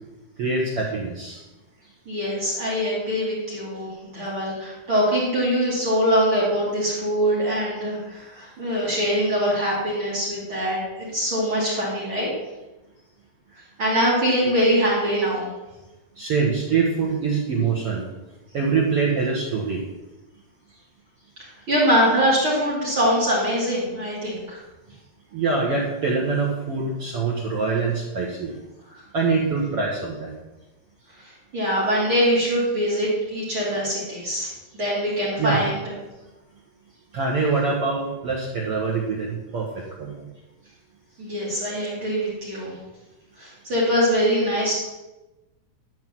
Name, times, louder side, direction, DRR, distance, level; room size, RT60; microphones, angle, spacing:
voice 1, 0.4-1.4 14.5-14.6 16.2-18.0 18.5-19.8 25.3-28.5 29.1-30.4 35.4-35.6 37.1-39.7 40.0-40.2, right 4 dB, 75° right, -3 dB, 1.3 m, -24 dB
voice 2, 2.0-12.3 13.8-15.5 21.7-24.6 31.2-35.8 41.2-42.7 43.4-44.8, equal, 35° right, -6 dB, 3.2 m, -23 dB
12.0 x 4.6 x 7.6 m, 1.1 s
omnidirectional pair, 4.7 m